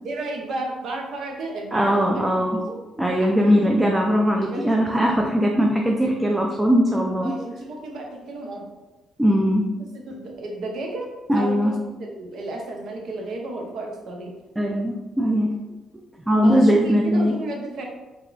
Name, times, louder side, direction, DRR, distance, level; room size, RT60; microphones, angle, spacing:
voice 1, 0.0-2.8 3.2-3.5 4.5-5.0 7.2-8.7 9.8-14.4 16.4-17.9, right 2 dB, 70° right, 1 dB, 0.7 m, -33 dB
voice 2, 1.7-2.6 3.0-7.3 9.2-9.7 11.3-11.7 14.6-15.5 16.3-17.3, equal, 10° right, 0 dB, 0.4 m, -20 dB
3.5 x 2.9 x 2.5 m, 1.1 s
cardioid pair, 90°, 0 cm